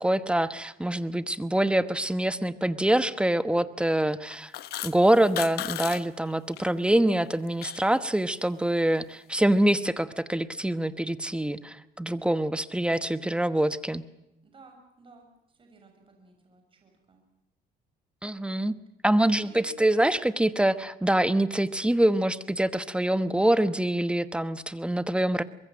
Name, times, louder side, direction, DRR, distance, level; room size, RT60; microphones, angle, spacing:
voice 1, 0.0-4.5 4.8-14.0 18.2-18.8 19.0-25.4, right 1 dB, 5° right, 13 dB, 1.1 m, -25 dB
sound 1, 4.3-6.0 6.3-6.6 7.0-7.9, left 14 dB, 75° left, 1.2 m, -36 dB
voice 2, 14.4-17.2 19.3-19.7, right 3 dB, 30° right, 3 dB, 6.5 m, -55 dB
24.0 x 21.5 x 7.5 m, 0.91 s
cardioid pair, 110°, 17 cm